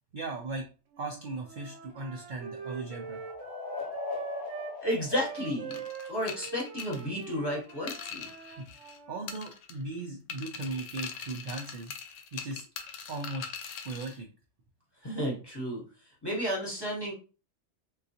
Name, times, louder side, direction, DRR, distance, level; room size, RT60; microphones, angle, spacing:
voice 1, 0.1-0.7 1.0-3.2 8.5-8.7 9.1-11.9 12.3-12.6 13.1-13.5 13.8-14.3, right 3 dB, 55° right, 1 dB, 0.5 m, -37 dB
Wind instrument woodwind instrument, 0.9-4.8 5.1-9.4, right 6 dB, 80° right, 1.0 m, -43 dB
sound 1, 1.6-6.3, left 5 dB, 60° left, 0.8 m, -41 dB
voice 2, 4.8-5.8 6.1-8.3 15.0-15.8 16.2-17.1, equal, 20° left, -5 dB, 1.0 m, -32 dB
sound 2, 5.7-9.0 9.3-9.9 10.3-14.2, left 7 dB, 85° left, 0.9 m, -42 dB
3.8 x 2.3 x 2.8 m, 0.34 s
omnidirectional pair, 1.3 m